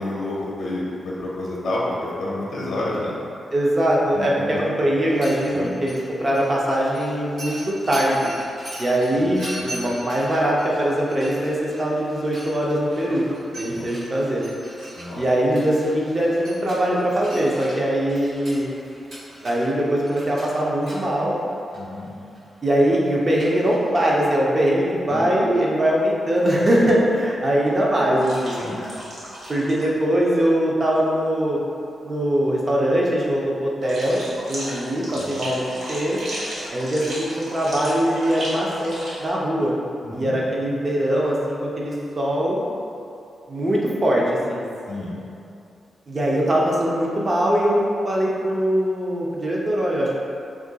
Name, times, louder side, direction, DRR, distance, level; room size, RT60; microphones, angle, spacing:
voice 1, 0.0-3.1 4.1-4.6 5.5-5.7 9.2-9.7 13.7-13.9 15.0-15.2 21.7-22.1 25.1-25.3 28.6-28.8 35.1-35.4 40.0-40.4 44.9-45.1, left 2 dB, 65° left, -5 dB, 0.5 m, -29 dB
voice 2, 3.5-8.3 8.8-13.2 13.6-14.4 15.1-18.7 19.4-21.3 22.6-28.6 29.5-31.6 32.0-34.2 34.5-36.2 36.7-38.9 39.2-39.7 40.1-42.6 43.5-44.2 44.5-44.6 46.1-50.2, right 1 dB, 30° right, -4 dB, 0.5 m, -21 dB
Mechanisms, 5.0-24.6, right 1 dB, 80° right, 1.5 m, -41 dB
sound 1, 28.2-29.9 30.2-30.4 33.8-39.3, equal, 65° right, 0.9 m, -34 dB
2.6 x 2.4 x 3.8 m, 2.6 s
wide cardioid pair, 145°, 0 cm